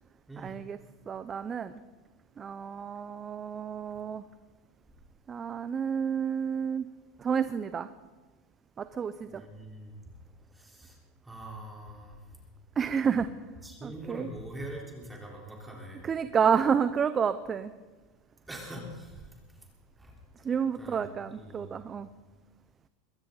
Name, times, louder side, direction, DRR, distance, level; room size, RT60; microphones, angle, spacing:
voice 1, 0.4-0.8 1.1-1.7 2.4-4.2 5.3-6.9 7.2-7.9 8.8-9.4 12.8-13.3 13.8-14.3 16.0-17.7 20.4-22.1, right 7 dB, 25° right, 12 dB, 0.6 m, -30 dB
voice 2, 9.3-10.0 10.5-11.0 11.2-12.2 13.0-13.2 13.6-16.0 18.5-19.3 20.0-20.1 20.8-21.7, right 1 dB, 10° right, -2 dB, 3.9 m, -43 dB
22.5 x 15.5 x 4.0 m, 1.3 s
supercardioid pair, 120°, 0 cm